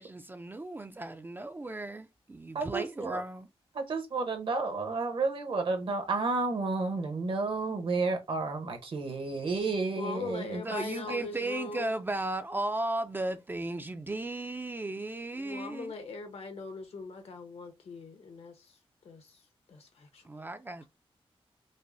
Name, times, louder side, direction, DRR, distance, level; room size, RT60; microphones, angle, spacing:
voice 1, 0.0-3.5 10.6-15.9 20.2-20.8, right 2 dB, 20° right, 0.3 m, -35 dB
voice 2, 2.5-3.2 3.7-10.6, right 3 dB, 60° right, 0.9 m, -31 dB
voice 3, 10.0-12.0 15.3-18.8 19.0-19.4 19.7-20.5, left 4 dB, 80° left, 0.9 m, -41 dB
5.3 x 2.0 x 2.6 m
wide cardioid pair, 145°, 10 cm